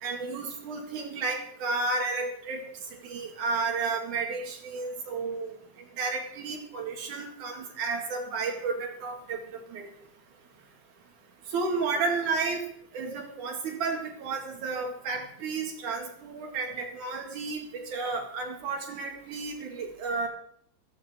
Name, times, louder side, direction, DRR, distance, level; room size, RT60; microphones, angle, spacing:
voice 1, 0.0-2.6 2.9-5.6 6.0-9.9 11.5-12.6 12.9-20.3, right 4 dB, 80° right, 2 dB, 3.8 m, -32 dB
17.0 x 14.5 x 3.8 m, 0.68 s
omnidirectional pair, 3.4 m